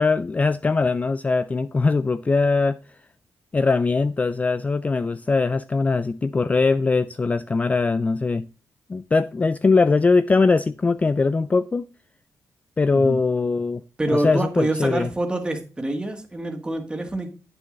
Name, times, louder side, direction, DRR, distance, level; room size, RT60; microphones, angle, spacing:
voice 1, 0.0-2.8 3.5-8.5 8.9-11.8 12.8-13.8 14.1-15.1, left 4 dB, 25° left, 0.3 m, -21 dB
voice 2, 14.0-17.3, right 1 dB, 15° right, 1.8 m, -26 dB
8.8 x 6.4 x 3.8 m
cardioid pair, 100°, 6 cm